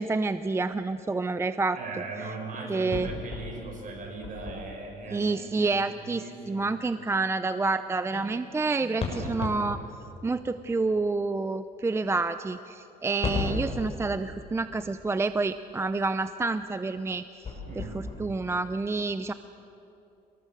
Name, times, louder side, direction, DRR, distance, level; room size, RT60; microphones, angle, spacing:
voice 1, 0.0-1.8 2.7-3.1 5.1-9.8 10.2-17.5 17.8-19.3, right 3 dB, 15° right, 12 dB, 0.6 m, -28 dB
voice 2, 1.7-6.7 8.1-8.3 8.8-9.1 17.6-18.0, right 3 dB, 50° right, 2 dB, 6.2 m, -40 dB
sound 1, 2.9-5.2 9.0-10.9 13.2-16.1 16.6-16.8 17.0-18.8, left 3 dB, 35° left, 5.8 m, -36 dB
26.5 x 19.5 x 7.8 m, 2.8 s
cardioid pair, 110°, 17 cm